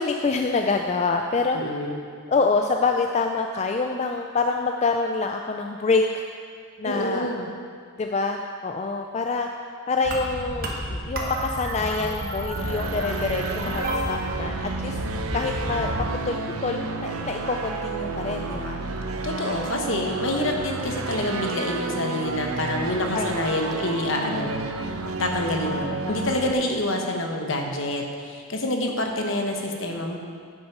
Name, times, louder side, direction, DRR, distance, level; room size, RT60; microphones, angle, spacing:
voice 1, 0.0-1.8 2.3-6.2 6.8-7.3 8.0-9.5 9.9-15.0 15.3-18.8 20.4-20.7 22.9-23.8 24.2-24.5 25.9-26.2, left 4 dB, 30° left, 3 dB, 0.3 m, -26 dB
voice 2, 1.5-2.0 6.8-7.5 19.2-24.9 25.2-30.2, left 1 dB, 60° left, 2 dB, 1.1 m, -27 dB
sound 1, 10.0-16.1, right 1 dB, 45° right, 1.1 m, -31 dB
sound 2, 12.5-26.5, right 3 dB, 90° right, 0.7 m, -31 dB
9.6 x 6.5 x 5.9 m, 2.1 s
head